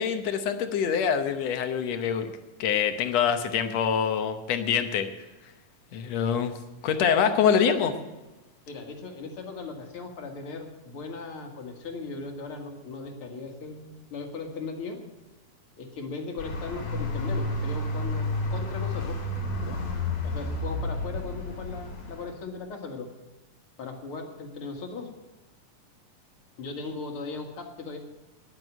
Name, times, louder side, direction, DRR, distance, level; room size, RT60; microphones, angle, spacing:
voice 1, 0.0-2.3 2.6-5.1 5.9-6.5 6.8-7.9, left 7 dB, 65° left, 8 dB, 1.9 m, -25 dB
voice 2, 8.7-15.0 15.8-19.2 19.6-19.8 20.2-23.1 23.8-25.1 26.6-28.0, left 4 dB, 50° left, 2 dB, 2.4 m, -38 dB
sound 1, 16.4-22.3, left 2 dB, 85° left, 4.3 m, -31 dB
10.5 x 9.3 x 9.6 m, 1.1 s
omnidirectional pair, 3.6 m